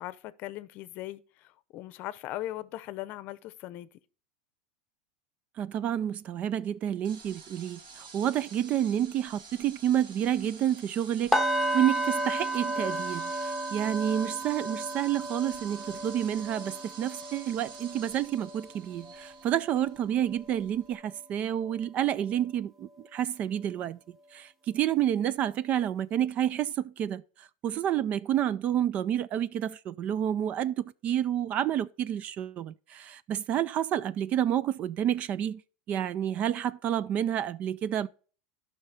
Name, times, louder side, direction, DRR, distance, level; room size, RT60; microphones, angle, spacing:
voice 1, 0.0-3.9, left 15 dB, 45° left, 0.7 m, -39 dB
voice 2, 5.6-11.4 11.7-35.6 35.9-38.1, right 10 dB, 35° right, 0.4 m, -29 dB
sound 1, 7.0-20.9, right 5 dB, 60° right, 2.7 m, -49 dB
sound 2, 11.3-21.2 21.6-21.9 22.3-22.4, right 1 dB, ahead, 1.0 m, -34 dB
12.0 x 5.6 x 4.2 m
supercardioid pair, 145°, 4 cm